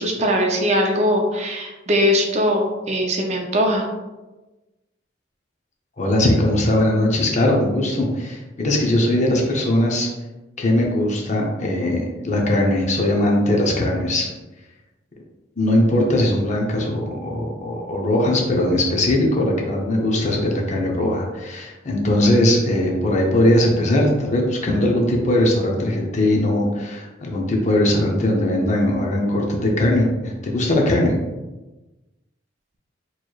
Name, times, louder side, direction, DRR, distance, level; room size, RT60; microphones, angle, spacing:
voice 1, 0.0-3.9, equal, 35° right, 1 dB, 0.5 m, -20 dB
voice 2, 6.0-10.1 10.6-14.3 15.6-31.1, left 1 dB, 40° left, 0 dB, 0.6 m, -20 dB
4.5 x 3.0 x 2.3 m, 1.1 s
head